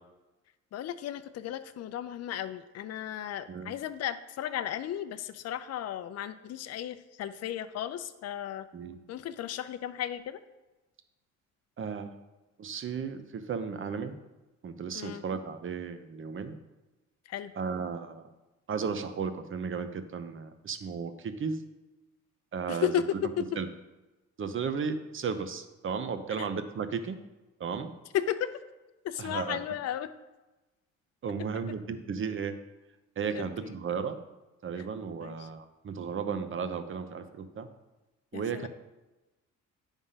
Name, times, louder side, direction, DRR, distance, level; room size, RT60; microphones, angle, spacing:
voice 1, 0.7-8.7 9.1-10.4 14.9-15.2 17.3-17.5 22.7-23.0 26.4-26.5 28.1-28.5 29.0-30.1 33.3-33.8 34.8-34.9 35.2-35.5 38.3-38.7, left 11 dB, 55° left, 12 dB, 0.5 m, -35 dB
voice 2, 11.8-12.1 12.6-14.1 14.6-16.6 17.6-18.3 18.7-21.6 22.5-22.9 23.6-23.7 24.4-27.2 27.6-27.9 29.2-29.6 31.2-32.5 33.2-34.2 34.6-37.7 38.3-38.7, right 6 dB, 40° right, 10 dB, 0.8 m, -34 dB
9.7 x 3.6 x 5.6 m, 1.1 s
cardioid pair, 90°, 30 cm